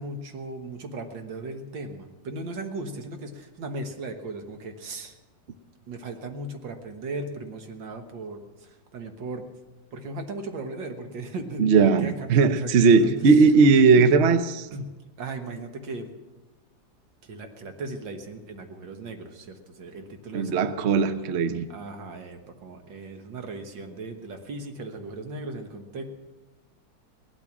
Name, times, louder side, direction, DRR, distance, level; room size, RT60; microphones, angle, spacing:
voice 1, 0.0-5.2 5.9-9.5 9.9-13.4 14.0-14.2 14.7-14.9 15.2-16.1 17.2-20.8 21.7-26.0, right 2 dB, 75° right, 2.0 m, -37 dB
voice 2, 11.6-14.7 20.3-21.6, right 4 dB, 55° right, 0.8 m, -18 dB
17.5 x 12.0 x 6.1 m
omnidirectional pair, 2.0 m